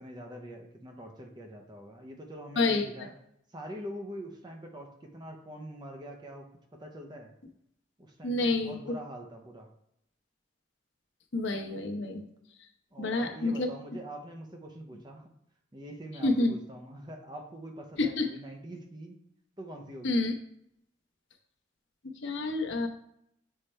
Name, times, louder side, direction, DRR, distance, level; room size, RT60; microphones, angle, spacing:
voice 1, 0.0-3.1 3.5-7.3 8.0-9.7 12.9-15.3 15.7-19.2 19.6-20.2, right 1 dB, 20° right, 3 dB, 0.7 m, -44 dB
voice 2, 2.6-2.9 8.2-8.8 11.3-12.2 13.0-13.7 16.2-16.5 18.0-18.3 20.0-20.3 22.2-22.9, left 2 dB, 75° left, 2 dB, 0.9 m, -28 dB
6.6 x 3.3 x 4.4 m, 0.75 s
head